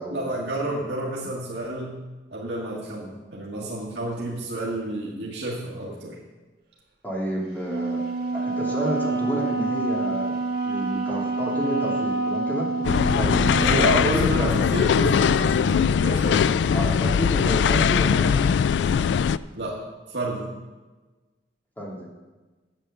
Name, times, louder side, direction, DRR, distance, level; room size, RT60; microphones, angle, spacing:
voice 1, 0.1-1.9 2.3-6.2 13.6-16.5 19.5-19.8 20.1-20.5, right 2 dB, 75° right, -4 dB, 1.8 m, -30 dB
voice 2, 7.0-8.0 8.3-10.4 10.7-12.7 13.2-13.4 13.9-14.6 16.7-18.5 21.8-22.1, equal, 10° left, -4 dB, 2.8 m, -30 dB
Wind instrument woodwind instrument, 7.6-13.9, right 3 dB, 55° right, 1.7 m, -27 dB
sound 1, 12.8-19.4, left 7 dB, 70° left, 0.3 m, -21 dB
9.0 x 8.6 x 6.8 m, 1.2 s
head